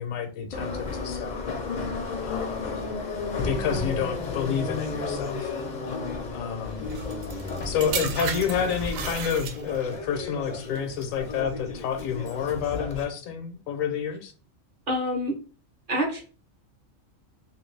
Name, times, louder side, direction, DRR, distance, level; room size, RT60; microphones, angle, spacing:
voice 1, 0.0-1.4 2.2-2.7 3.3-5.5 6.3-6.8 7.6-14.3, left 7 dB, 80° left, 1.0 m, -29 dB
Subway metro underground, 0.5-13.0, left 3 dB, 50° left, 0.5 m, -33 dB
sound 1, 6.9-10.0 10.8-11.0, right 7 dB, 80° right, 1.0 m, -34 dB
voice 2, 14.9-15.3 15.9-16.2, equal, 45° right, 0.8 m, -26 dB
2.9 x 2.5 x 3.1 m
omnidirectional pair, 1.4 m